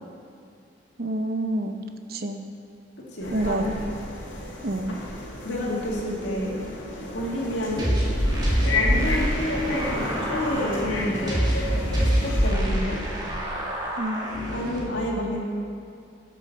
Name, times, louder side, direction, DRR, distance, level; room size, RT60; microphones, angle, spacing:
voice 1, 1.0-1.8 2.1-2.4 3.3-3.7 4.6-5.0 14.0-14.3, right 2 dB, 50° right, 6 dB, 0.7 m, -28 dB
voice 2, 3.1-3.7 5.4-6.5 7.1-7.9 8.7-11.4 12.0-13.0 14.5-15.4, left 1 dB, 70° left, -3 dB, 2.2 m, -29 dB
sound 1, 3.2-12.5, left 2 dB, 85° left, 2.1 m, -31 dB
sound 2, 7.8-14.8, equal, 20° right, 1.9 m, -26 dB
11.0 x 6.6 x 6.6 m, 2.5 s
head